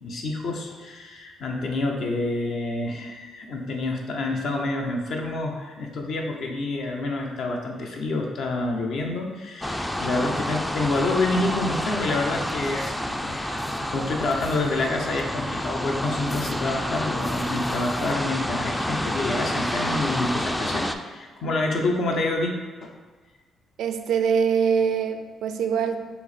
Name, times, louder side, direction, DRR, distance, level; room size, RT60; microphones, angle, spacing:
voice 1, 0.0-22.9, left 2 dB, 65° left, 1 dB, 0.7 m, -28 dB
sound 1, 9.6-20.9, equal, 5° left, 0.3 m, -29 dB
voice 2, 23.8-26.0, right 6 dB, 75° right, 7 dB, 0.4 m, -23 dB
5.5 x 2.1 x 4.1 m, 1.4 s
cardioid pair, 90°, 0 cm